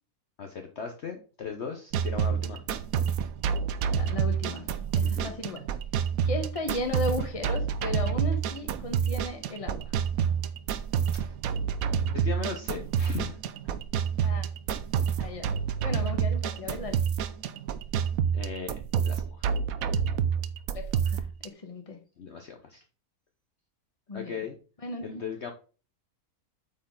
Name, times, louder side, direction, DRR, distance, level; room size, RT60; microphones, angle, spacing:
voice 1, 0.4-2.7 5.0-5.4 11.2-11.4 12.1-13.5 18.3-19.5 22.2-22.8 24.1-24.6 25.0-25.5, left 6 dB, 50° left, 4 dB, 1.1 m, -38 dB
sound 1, 1.9-21.5, right 7 dB, 70° right, 1.1 m, -28 dB
voice 2, 4.0-4.6 4.9-5.6 6.2-9.8 14.2-14.4 15.2-15.5 15.8-17.0 20.7-22.0 24.1-24.3 24.8-25.2, left 2 dB, 25° left, 4 dB, 1.3 m, -35 dB
8.4 x 4.6 x 3.8 m, 0.35 s
omnidirectional pair, 1.6 m